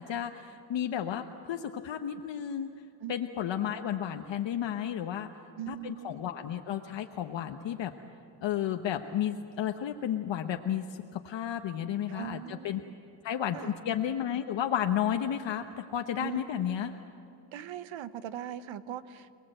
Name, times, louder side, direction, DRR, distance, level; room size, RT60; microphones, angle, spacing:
voice 1, 0.0-2.7 3.1-5.3 5.7-7.9 8.4-12.8 13.2-16.9, left 10 dB, 60° left, 5 dB, 1.1 m, -32 dB
voice 2, 3.0-3.5 5.6-6.2 12.1-13.0 13.5-13.7 16.2-16.8 17.5-19.3, right 10 dB, 70° right, 13 dB, 1.2 m, -41 dB
28.0 x 19.5 x 7.8 m, 2.6 s
cardioid pair, 115°, 49 cm